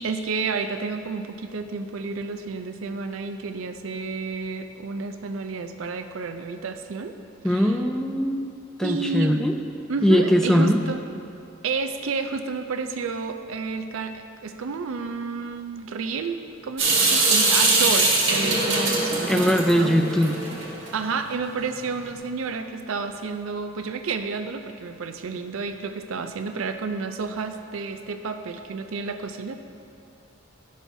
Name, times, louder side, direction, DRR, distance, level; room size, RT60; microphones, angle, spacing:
voice 1, 0.0-7.2 7.4-7.8 8.8-9.4 9.9-11.0 11.6-19.9 20.9-29.5, right 4 dB, 85° right, 7 dB, 0.5 m, -30 dB
voice 2, 7.4-8.5 8.8-9.6 10.0-10.8 19.1-20.3, equal, 5° left, 4 dB, 0.3 m, -21 dB
Water tap faucet / Sink (filling or washing) / Drip, 16.8-20.9, right 3 dB, 65° right, 1.7 m, -22 dB
11.5 x 6.3 x 2.7 m, 2.6 s
head